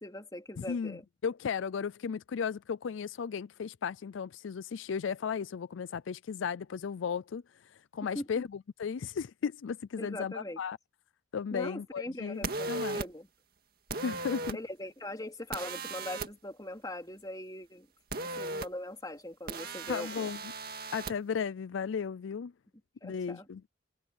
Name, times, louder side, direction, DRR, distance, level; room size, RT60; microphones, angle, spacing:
voice 1, 0.0-1.0 8.1-8.3 10.0-10.6 11.5-13.3 14.5-17.9 18.1-20.3 23.0-23.5, left 1 dB, 20° left, 3.4 m, -41 dB
voice 2, 0.6-7.4 7.9-10.8 11.3-13.0 14.0-14.6 19.9-20.4 20.9-22.5 23.0-23.6, left 6 dB, 80° left, 0.4 m, -35 dB
sound 1, 12.4-13.1 13.9-14.6 15.5-16.3 18.1-18.7 19.5-21.1, right 3 dB, 50° right, 2.1 m, -37 dB
head